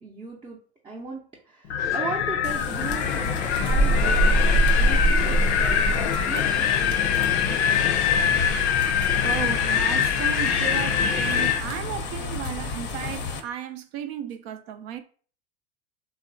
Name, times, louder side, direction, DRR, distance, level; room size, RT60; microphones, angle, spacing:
voice 1, 0.0-0.6 0.8-8.5, right 3 dB, 15° right, 0.5 m, -38 dB
Wind, 1.7-11.6, left 8 dB, 85° left, 0.5 m, -24 dB
sound 1, 2.4-13.4, equal, 35° left, 0.5 m, -27 dB
voice 2, 9.2-15.0, right 9 dB, 70° right, 0.5 m, -34 dB
2.9 x 2.0 x 2.5 m
hypercardioid pair, 100°, 33 cm